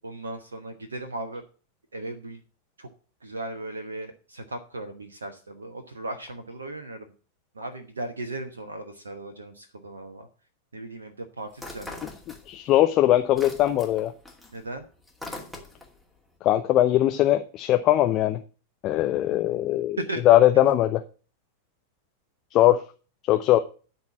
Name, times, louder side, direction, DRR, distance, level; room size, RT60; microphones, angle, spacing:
voice 1, 0.0-1.4 1.9-2.4 2.8-2.9 3.2-7.0 7.6-10.3 10.7-12.0 14.5-14.9 20.0-20.2, right 2 dB, 75° right, 7 dB, 1.0 m, -36 dB
sound 1, 11.5-12.8 13.1-16.0, left 2 dB, ahead, 2.4 m, -41 dB
voice 2, 12.5-14.1 16.4-18.4 18.8-20.0 20.2-21.0 22.5-22.8 23.3-23.6, left 13 dB, 35° left, 7 dB, 0.7 m, -20 dB
12.0 x 4.3 x 7.1 m, 0.38 s
figure-of-eight pair, 90°, 0 cm